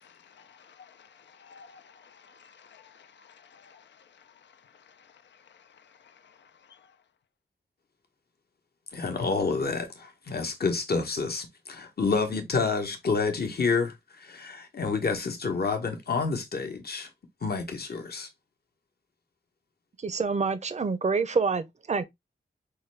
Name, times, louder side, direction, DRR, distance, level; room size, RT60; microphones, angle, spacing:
voice 1, 0.0-6.9, left 6 dB, 85° left, 0.4 m, -56 dB
voice 2, 8.9-17.1 17.4-18.3, left 4 dB, 60° left, 1.0 m, -29 dB
voice 3, 20.0-22.0, right 4 dB, 40° right, 0.6 m, -27 dB
4.7 x 2.2 x 3.1 m
cardioid pair, 50°, 18 cm